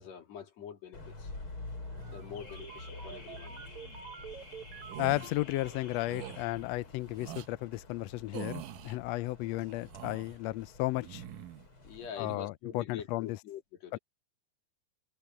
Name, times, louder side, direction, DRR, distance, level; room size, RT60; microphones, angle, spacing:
voice 1, 0.0-1.3 2.1-3.6 11.8-14.0, left 8 dB, 60° left, 3.5 m, -45 dB
Car / Alarm, 0.9-12.1, left 2 dB, 40° left, 6.9 m, -48 dB
sound 1, 1.8-6.0, right 8 dB, 65° right, 2.7 m, -49 dB
sound 2, 4.8-5.3 6.1-6.4 7.2-7.5 8.3-9.0 9.7-10.4 11.0-11.7 12.0-12.4, right 13 dB, 85° right, 2.6 m, -44 dB
voice 2, 5.0-11.2 12.2-13.4 13.9-14.0, left 18 dB, 85° left, 1.5 m, -34 dB
omnidirectional pair, 3.6 m